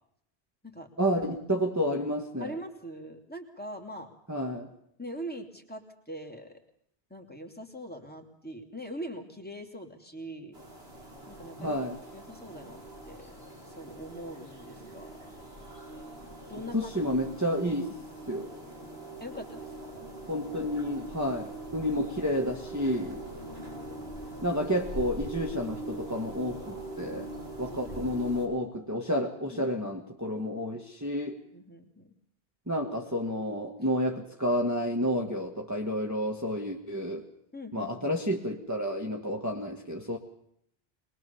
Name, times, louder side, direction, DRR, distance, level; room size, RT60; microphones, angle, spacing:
voice 1, 1.0-2.5 4.3-4.7 11.6-12.0 16.7-17.8 18.3-18.5 20.3-23.2 24.4-27.3 27.6-31.4 32.7-37.2 37.7-40.2, equal, 15° right, -1 dB, 1.7 m, -30 dB
voice 2, 2.4-4.1 5.0-6.5 7.1-10.6 11.3-11.8 12.1-13.3 13.8-15.2 16.5-16.9 17.9-18.0 19.2-19.7 20.0-20.1 23.4-23.6 27.7-28.0 29.5-29.8 30.2-30.4 31.5-32.1 37.5-38.1, equal, 10° left, 2 dB, 3.1 m, -42 dB
sound 1, 10.5-28.5, right 1 dB, 75° right, 5.0 m, -43 dB
23.0 x 21.5 x 7.0 m, 0.69 s
omnidirectional pair, 1.0 m